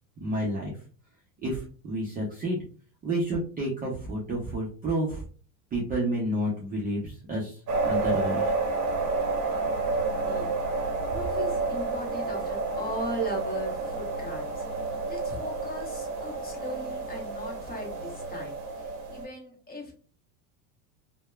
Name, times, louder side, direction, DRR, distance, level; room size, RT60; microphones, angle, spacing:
voice 1, 0.2-0.8 1.4-2.6 3.0-5.2 5.7-8.5, right 1 dB, 20° right, -4 dB, 0.5 m, -30 dB
sound 1, 7.7-19.2, right 3 dB, 40° right, 0.8 m, -30 dB
voice 2, 10.0-10.6 11.1-19.9, equal, 20° left, -1 dB, 0.9 m, -38 dB
2.8 x 2.1 x 2.2 m, 0.40 s
supercardioid pair, 120°, 47 cm